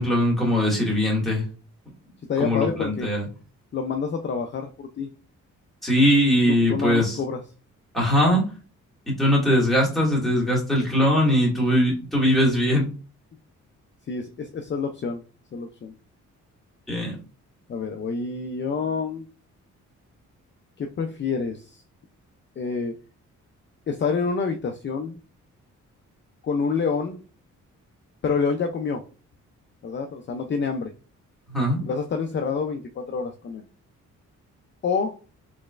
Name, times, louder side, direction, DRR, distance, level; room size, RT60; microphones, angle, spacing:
voice 1, 0.0-1.4 2.4-3.3 5.8-7.2 7.9-8.4 9.1-12.9 16.9-17.2 31.5-31.8, equal, ahead, -4 dB, 2.0 m, -21 dB
voice 2, 2.3-3.1 3.7-5.1 6.5-7.4 11.7-11.8 14.1-15.2 15.5-15.9 17.7-19.2 20.8-21.8 22.6-22.9 23.9-25.2 26.4-27.2 28.2-29.0 29.8-30.9 31.8-33.6 34.8-35.1, left 5 dB, 35° left, 4 dB, 0.5 m, -27 dB
4.1 x 3.2 x 2.4 m, 0.36 s
cardioid pair, 85°, 31 cm